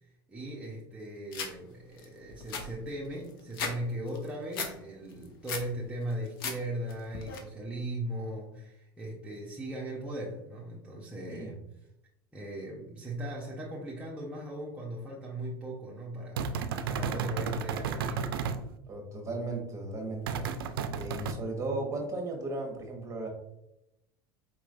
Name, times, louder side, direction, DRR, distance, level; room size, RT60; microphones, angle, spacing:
voice 1, 0.0-11.5 12.3-18.6, right 1 dB, 10° right, -5 dB, 1.0 m, -38 dB
sound 1, 1.3-1.5 2.0-2.1 2.3-3.8 4.1-4.7 5.1-5.7 6.1-6.6 6.9-7.4, left 5 dB, 75° left, 0.8 m, -36 dB
sound 2, 16.4-18.6 20.3-21.3, right 6 dB, 80° right, 0.4 m, -33 dB
voice 2, 18.9-23.3, right 2 dB, 25° right, 2 dB, 1.3 m, -36 dB
4.6 x 3.0 x 2.6 m, 0.84 s
hypercardioid pair, 85°, 12 cm